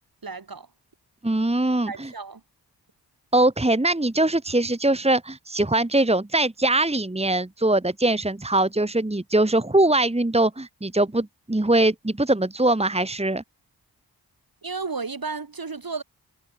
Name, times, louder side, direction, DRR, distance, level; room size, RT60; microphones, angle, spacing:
voice 1, 0.2-0.7 1.9-2.4 14.6-16.0, right 4 dB, 55° right, 6.5 m, -33 dB
voice 2, 1.2-2.1 3.3-13.4, right 2 dB, 15° right, 2.1 m, -22 dB
cardioid pair, 60°, 42 cm